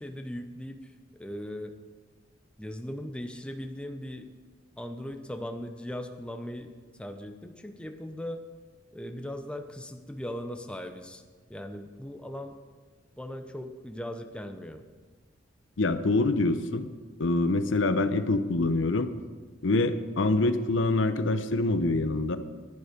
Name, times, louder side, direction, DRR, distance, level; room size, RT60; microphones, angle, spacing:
voice 1, 0.0-1.8 2.6-4.3 4.8-8.5 8.9-11.2 11.5-12.6 13.2-14.8, left 1 dB, 5° left, 6 dB, 0.7 m, -39 dB
voice 2, 15.8-16.9 17.2-19.1 19.6-22.4, left 2 dB, 75° left, 11 dB, 0.7 m, -25 dB
11.0 x 11.0 x 5.2 m, 1.4 s
head